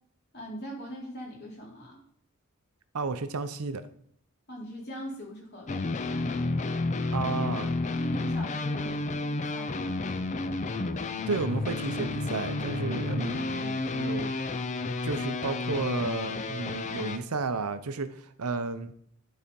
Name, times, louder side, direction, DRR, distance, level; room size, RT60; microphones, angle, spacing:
voice 1, 0.3-2.0 4.5-5.9 8.0-10.1, equal, 50° left, 3.2 m, -40 dB
voice 2, 2.9-3.9 7.1-7.8 11.3-14.4 15.0-18.9, right 4 dB, 80° right, 0.7 m, -32 dB
sound 1, 5.7-17.2, left 3 dB, 30° left, 0.5 m, -31 dB
11.0 x 4.2 x 5.3 m
head